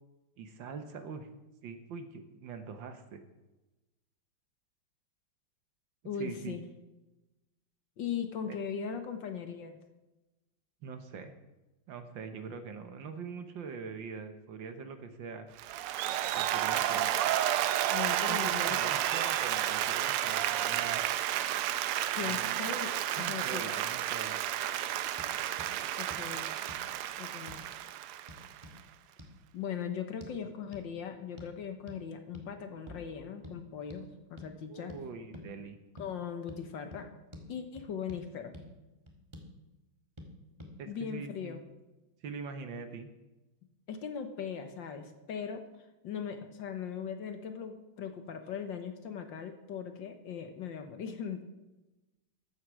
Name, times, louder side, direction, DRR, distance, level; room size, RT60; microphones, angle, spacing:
voice 1, 0.4-1.3 1.6-3.2 6.2-6.6 8.5-8.6 10.8-11.3 11.9-15.5 16.3-17.2 18.2-21.1 22.2-22.6 23.2-24.4 30.3-30.5 34.7-35.8 40.8-41.6 42.2-43.1, right 5 dB, 65° right, 8 dB, 1.6 m, -43 dB
voice 2, 6.0-6.6 8.0-9.8 17.9-19.0 22.1-22.9 23.3-23.8 25.9-26.5 27.2-27.6 29.5-34.9 36.0-37.1 37.5-38.5 40.9-41.6 43.9-45.6 46.0-51.4, left 7 dB, 60° left, 7 dB, 1.6 m, -39 dB
Applause, 15.6-28.8, right 12 dB, 85° right, 1.6 m, -31 dB
sound 1, 25.2-25.3 25.6-25.7 26.1-26.2 26.7-26.9 27.5-27.7 28.3-28.8 29.2-29.3 30.2-30.3 30.7-30.9 31.4-31.6 31.9-32.0 32.3-32.5 32.9-33.1 33.4-33.6 33.9-34.0 34.4-34.5 34.9-35.0 35.3-35.5 36.0-36.1 36.5-36.6 36.9-37.0 37.3-37.5 37.8-38.2 38.5-38.7 39.1-39.5 40.2-40.3 40.6-40.7, left 1 dB, 15° right, 1.4 m, -48 dB
14.0 x 8.0 x 6.2 m, 1.1 s
omnidirectional pair, 2.4 m